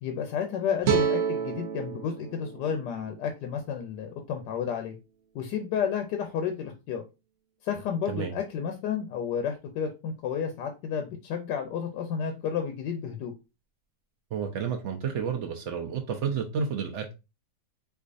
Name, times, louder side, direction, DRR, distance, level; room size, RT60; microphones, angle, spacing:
voice 1, 0.0-4.9 5.3-7.0 7.6-13.3, left 7 dB, 90° left, 1.2 m, -31 dB
sound 1, 0.8-4.0, right 6 dB, 65° right, 0.9 m, -30 dB
voice 2, 14.3-17.1, right 6 dB, 85° right, 0.6 m, -31 dB
4.6 x 2.4 x 2.5 m
omnidirectional pair, 1.8 m